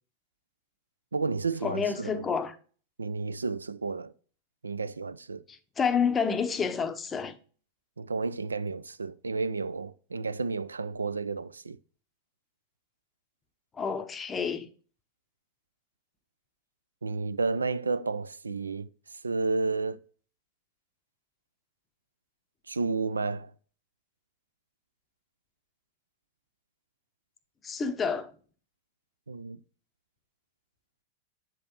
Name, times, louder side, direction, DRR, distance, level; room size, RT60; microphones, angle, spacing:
voice 1, 1.1-2.3 3.0-4.1 4.6-5.4 8.0-11.8 17.0-18.9 19.2-20.0 22.7-23.5 29.3-29.6, right 4 dB, 75° right, 0.4 m, -31 dB
voice 2, 1.6-2.6 5.5-7.4 13.8-14.7 27.6-28.3, left 6 dB, 20° left, 0.6 m, -29 dB
7.3 x 5.1 x 2.9 m
figure-of-eight pair, 90°, 0 cm